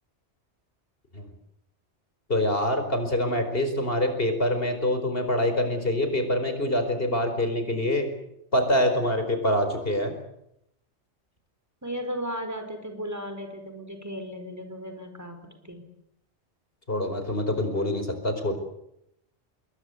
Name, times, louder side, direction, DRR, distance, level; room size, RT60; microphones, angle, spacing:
voice 1, 2.3-8.1 8.5-10.1 16.9-18.6, left 1 dB, 55° left, 7 dB, 5.0 m, -25 dB
voice 2, 11.8-15.9, equal, 15° right, 6 dB, 4.7 m, -35 dB
27.0 x 22.0 x 8.4 m, 0.79 s
omnidirectional pair, 1.2 m